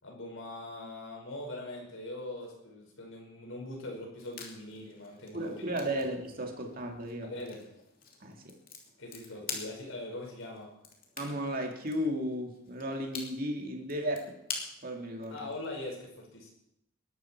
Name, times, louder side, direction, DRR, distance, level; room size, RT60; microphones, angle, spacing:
voice 1, 0.0-5.8 6.3-6.4 7.2-7.6 9.0-10.7 15.3-16.5, left 1 dB, 75° left, 0 dB, 5.5 m, -42 dB
sound 1, 4.2-15.8, left 5 dB, 45° left, 2.8 m, -47 dB
voice 2, 5.3-7.3 8.2-8.6 11.2-14.4 14.8-15.5, equal, 45° right, 2 dB, 2.3 m, -34 dB
21.0 x 12.0 x 4.6 m, 0.79 s
head